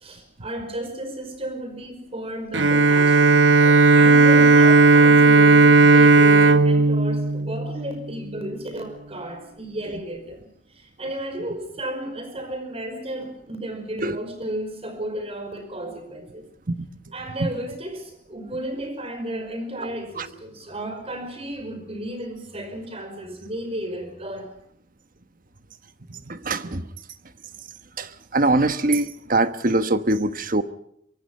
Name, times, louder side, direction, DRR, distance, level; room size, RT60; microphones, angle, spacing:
voice 1, 0.0-3.4 3.9-16.4 17.1-24.5, right 1 dB, 35° right, 8 dB, 5.3 m, -33 dB
Bowed string instrument, 2.5-8.2, right 3 dB, 85° right, 1.1 m, -14 dB
voice 2, 26.1-26.9 28.0-30.6, right 2 dB, 50° right, 11 dB, 1.2 m, -23 dB
24.5 x 22.5 x 5.5 m, 0.73 s
head